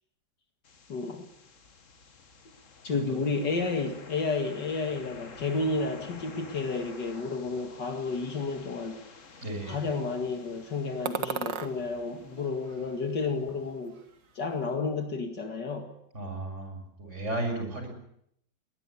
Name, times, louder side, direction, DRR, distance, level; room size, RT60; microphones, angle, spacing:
sound 1, 0.6-14.5, left 4 dB, 45° left, 2.0 m, -51 dB
voice 1, 0.9-1.3 2.8-9.0 9.6-14.0 14.4-15.9, left 4 dB, 70° left, 5 dB, 2.6 m, -31 dB
voice 2, 2.9-3.2 9.4-9.9 16.1-17.9, right 2 dB, 40° right, 4 dB, 6.9 m, -34 dB
sound 2, 11.1-11.7 12.3-13.3 13.5-14.4, right 7 dB, 80° right, 2.2 m, -36 dB
21.0 x 20.5 x 10.0 m, 0.72 s
omnidirectional pair, 1.9 m